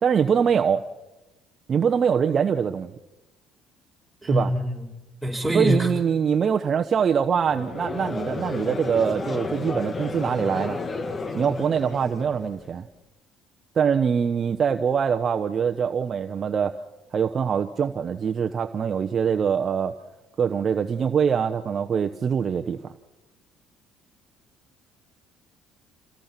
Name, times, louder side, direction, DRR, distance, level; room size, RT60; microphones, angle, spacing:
voice 1, 0.0-0.8 1.7-2.9 4.3-4.5 5.5-10.8 11.3-12.9 13.7-16.7 17.1-19.9 20.4-22.8, right 7 dB, 45° right, 6 dB, 1.0 m, -23 dB
voice 2, 4.2-4.9 5.2-5.9, equal, 5° right, -1 dB, 5.6 m, -24 dB
Conversation / Crowd, 7.4-12.7, left 3 dB, 30° left, 1.6 m, -32 dB
28.5 x 17.0 x 6.0 m, 1.0 s
supercardioid pair, 75°, 0 cm